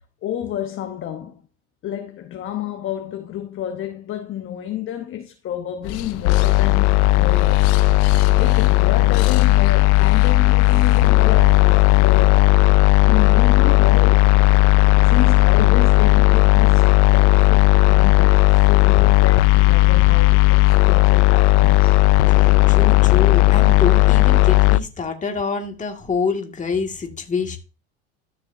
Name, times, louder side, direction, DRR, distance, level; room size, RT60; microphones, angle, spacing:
voice 1, 0.2-1.4 1.8-7.8 8.1-14.3 15.0-22.0, left 10 dB, 35° left, 1.0 m, -30 dB
sound 1, 5.8-12.3, left 8 dB, 65° left, 1.0 m, -31 dB
sound 2, 6.2-24.8, left 18 dB, 80° left, 0.5 m, -15 dB
voice 2, 22.3-27.6, left 4 dB, 20° left, 2.1 m, -26 dB
13.0 x 6.7 x 2.7 m
supercardioid pair, 100°, 34 cm